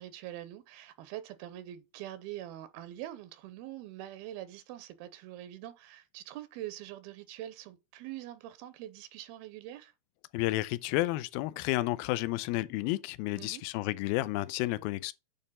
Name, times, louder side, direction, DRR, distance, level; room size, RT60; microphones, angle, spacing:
voice 1, 0.0-9.9 13.4-13.6, right 13 dB, 90° right, 2.6 m, -44 dB
voice 2, 10.3-15.1, left 18 dB, 80° left, 2.3 m, -31 dB
8.9 x 3.6 x 5.5 m
omnidirectional pair, 4.4 m